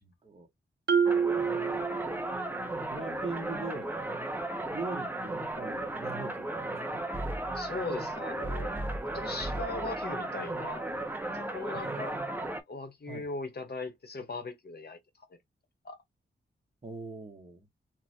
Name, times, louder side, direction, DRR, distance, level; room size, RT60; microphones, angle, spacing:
voice 1, 0.0-0.5 2.9-3.9 4.7-7.0 11.7-12.4 13.1-13.3 16.8-17.7, right 4 dB, 30° right, 1.1 m, -41 dB
Marimba xylophone, 0.9-2.6, right 6 dB, 60° right, 0.6 m, -28 dB
sound 1, 1.1-12.6, right 1 dB, 10° right, 0.8 m, -35 dB
voice 2, 7.5-8.7 9.1-10.9 11.5-12.2 12.7-15.3 15.8-16.0, left 3 dB, 55° left, 1.1 m, -39 dB
3.1 x 2.5 x 2.7 m
cardioid pair, 70°, 20 cm